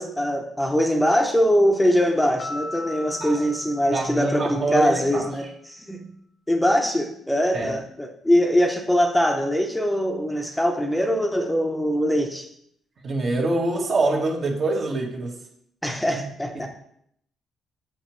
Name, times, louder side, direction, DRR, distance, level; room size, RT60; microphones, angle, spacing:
voice 1, 0.0-6.1 6.5-12.5 15.8-16.7, equal, 5° left, 3 dB, 0.7 m, -22 dB
Piano, 2.4-5.0, left 2 dB, 85° left, 1.0 m, -38 dB
voice 2, 3.9-5.3 7.5-7.7 13.0-15.3 16.5-16.7, right 2 dB, 50° right, 1 dB, 1.4 m, -25 dB
6.3 x 5.9 x 3.1 m, 0.69 s
cardioid pair, 90°, 0 cm